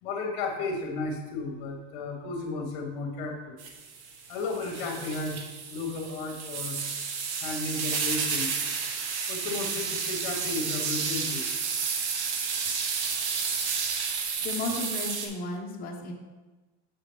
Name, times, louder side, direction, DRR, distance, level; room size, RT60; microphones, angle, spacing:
voice 1, 0.0-3.6 4.3-5.4 5.7-6.8 7.4-8.6 9.3-11.5, left 3 dB, 50° left, 3 dB, 1.3 m, -33 dB
sound 1, 3.6-15.3, right 5 dB, 90° right, 1.1 m, -31 dB
voice 2, 14.4-16.1, left 2 dB, 25° left, 0 dB, 0.9 m, -33 dB
6.0 x 6.0 x 3.4 m, 1.2 s
supercardioid pair, 165°, 33 cm